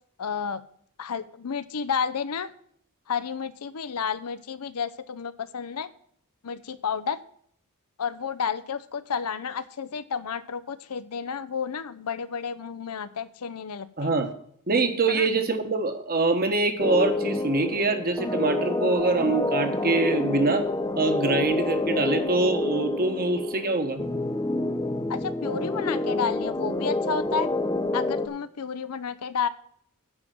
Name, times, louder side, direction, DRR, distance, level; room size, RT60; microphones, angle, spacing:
voice 1, 0.2-0.6 1.0-2.5 3.1-5.9 6.4-7.2 8.0-14.1 15.1-15.3 25.1-27.5 27.9-29.5, left 6 dB, 85° left, 15 dB, 0.6 m, -31 dB
voice 2, 14.0-14.3 14.7-20.6 21.0-24.0, right 3 dB, 40° right, 7 dB, 1.3 m, -24 dB
sound 1, 16.8-28.3, left 2 dB, 15° left, 0.8 m, -28 dB
9.7 x 5.2 x 7.6 m, 0.64 s
head